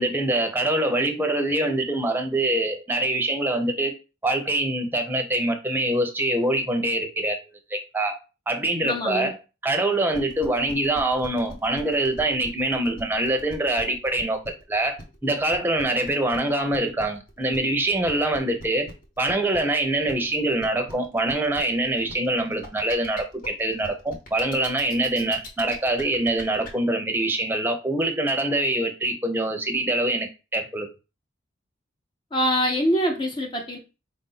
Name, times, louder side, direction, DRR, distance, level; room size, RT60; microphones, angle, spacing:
voice 1, 0.0-3.9 4.2-7.4 7.7-8.2 8.5-9.4 9.6-18.9 19.2-30.9, right 1 dB, 10° right, 0.7 m, -24 dB
voice 2, 8.8-9.3 32.3-33.8, equal, 25° left, 0.6 m, -24 dB
sound 1, 10.1-26.7, left 1 dB, 45° left, 1.2 m, -41 dB
4.5 x 2.6 x 4.0 m
head